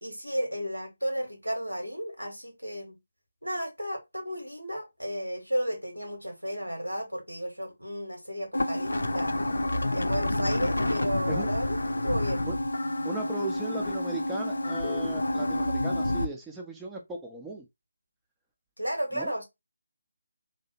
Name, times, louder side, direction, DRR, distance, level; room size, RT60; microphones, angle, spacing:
voice 1, 0.0-3.0 3.4-9.4 9.9-11.8 12.0-12.4 18.8-19.4, equal, 85° right, 1.4 m, -33 dB
sound 1, 8.5-16.2, left 1 dB, 65° left, 0.6 m, -28 dB
voice 2, 13.0-17.6 19.1-19.4, right 2 dB, 5° right, 0.5 m, -37 dB
3.1 x 2.7 x 2.8 m
figure-of-eight pair, 150°, 0 cm